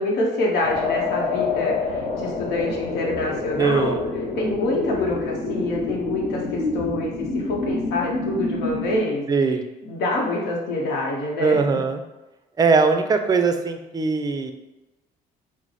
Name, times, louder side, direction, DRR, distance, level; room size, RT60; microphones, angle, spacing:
voice 1, 0.0-3.9 4.3-9.2 9.9-11.6, left 2 dB, 80° left, -2 dB, 0.9 m, -26 dB
sound 1, 0.6-9.0, left 3 dB, 45° left, 0.8 m, -27 dB
voice 2, 3.6-4.0 9.3-9.6 11.4-12.0 12.6-14.5, right 4 dB, 20° right, 6 dB, 0.4 m, -20 dB
4.6 x 2.0 x 4.0 m, 1.0 s
cardioid pair, 110°, 17 cm